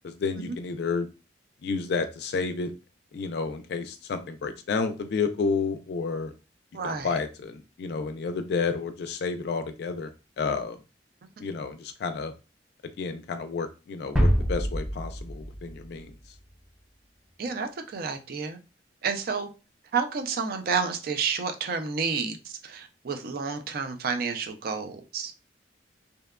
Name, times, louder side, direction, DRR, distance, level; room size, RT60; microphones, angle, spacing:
voice 1, 0.0-1.1 1.6-2.7 3.1-6.3 6.8-10.1 10.4-10.8 11.4-12.3 13.0-16.1, left 4 dB, 65° left, 0.3 m, -30 dB
voice 2, 6.7-7.1 17.4-18.6 19.0-19.5 19.9-25.3, right 5 dB, 55° right, 0.4 m, -30 dB
sound 1, 14.2-16.6, equal, ahead, 0.5 m, -26 dB
2.7 x 2.2 x 2.3 m
head